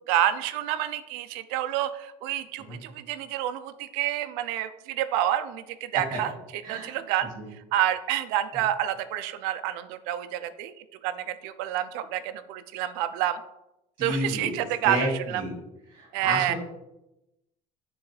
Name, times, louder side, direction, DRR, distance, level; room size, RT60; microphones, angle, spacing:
voice 1, 0.1-10.7 11.0-13.4 14.0-15.4 16.1-16.5, right 12 dB, 80° right, 11 dB, 0.5 m, -28 dB
voice 2, 6.6-6.9 7.3-7.4 14.0-14.6 14.8-15.5 15.9-16.6, equal, 30° right, -1 dB, 2.4 m, -31 dB
9.3 x 3.8 x 3.2 m, 0.90 s
cardioid pair, 160°, 16 cm